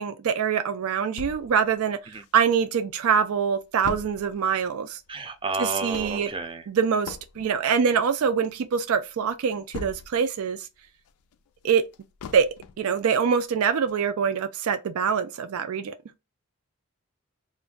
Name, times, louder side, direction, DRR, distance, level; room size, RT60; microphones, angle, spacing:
voice 1, 0.0-2.0 2.3-5.0 5.6-6.3 6.7-10.7 11.6-11.8 12.3-12.5 12.8-15.9, right 7 dB, 80° right, 0.4 m, -24 dB
sound 1, 1.2-2.7 3.1-3.2 3.4-10.4 10.8-12.9 13.4-13.5 13.9-14.0, left 5 dB, 80° left, 0.3 m, -42 dB
voice 2, 5.1-6.6, right 3 dB, 25° right, 0.5 m, -31 dB
2.5 x 2.1 x 3.7 m
head